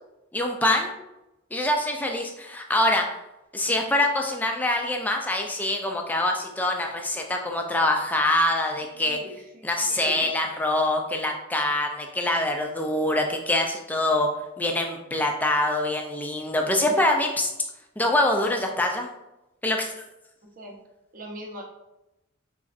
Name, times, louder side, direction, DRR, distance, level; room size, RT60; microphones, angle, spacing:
voice 1, 0.3-0.9 1.5-3.1 3.5-9.2 9.6-14.3 14.6-17.5 18.0-19.1 19.6-19.9, left 1 dB, 10° left, 2 dB, 0.3 m, -24 dB
voice 2, 8.8-10.3 20.6-20.7 21.1-21.6, equal, 40° right, 1 dB, 0.6 m, -41 dB
3.7 x 3.0 x 2.5 m, 0.93 s
head